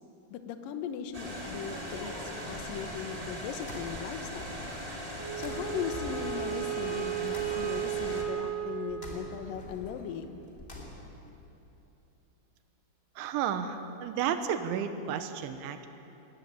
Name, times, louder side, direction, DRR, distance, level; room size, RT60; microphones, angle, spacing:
voice 1, 0.3-4.6 5.4-10.4, left 7 dB, 70° left, 8 dB, 2.2 m, -38 dB
sound 1, 1.1-11.3, left 1 dB, 15° left, 2.4 m, -48 dB
sound 2, 1.1-8.2, equal, 10° right, 1.7 m, -40 dB
Wind instrument woodwind instrument, 5.1-9.5, right 11 dB, 45° left, 8.9 m, -35 dB
voice 2, 13.2-15.9, right 8 dB, 80° right, 9 dB, 3.5 m, -32 dB
20.0 x 19.0 x 8.9 m, 2.9 s
omnidirectional pair, 5.4 m